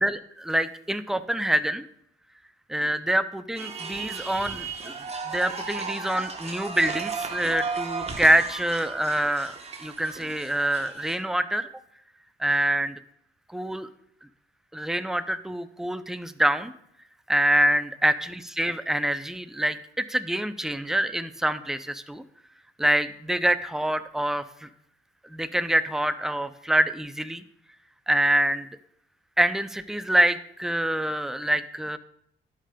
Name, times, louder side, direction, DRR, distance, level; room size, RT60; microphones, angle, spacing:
voice 1, 0.0-1.8 2.7-4.9 5.3-11.7 12.4-12.9 13.5-13.9 14.7-16.7 17.3-22.2 22.8-24.7 25.3-27.4 28.1-28.7 29.4-32.0, right 1 dB, ahead, 11 dB, 0.4 m, -25 dB
sound 1, 3.6-11.2, right 5 dB, 30° right, 1.0 m, -35 dB
11.0 x 5.0 x 2.2 m, 0.72 s
cardioid pair, 90°, 20 cm